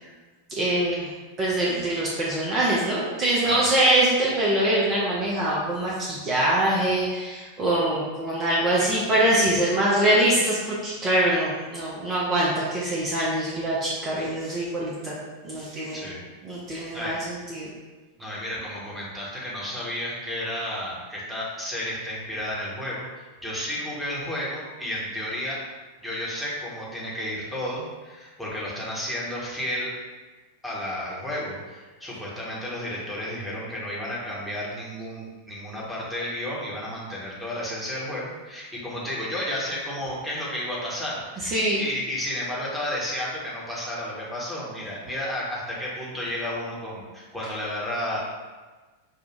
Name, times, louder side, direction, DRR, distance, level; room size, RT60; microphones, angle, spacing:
voice 1, 0.6-1.1 1.4-15.2 15.4-16.1 16.4-17.7 41.4-41.8, right 1 dB, 30° right, -6 dB, 0.7 m, -24 dB
voice 2, 16.7-17.3 18.2-25.6 26.0-29.9 30.6-41.5 41.8-48.2, left 1 dB, ahead, -6 dB, 1.2 m, -32 dB
6.5 x 2.3 x 2.5 m, 1.3 s
figure-of-eight pair, 90°, 0 cm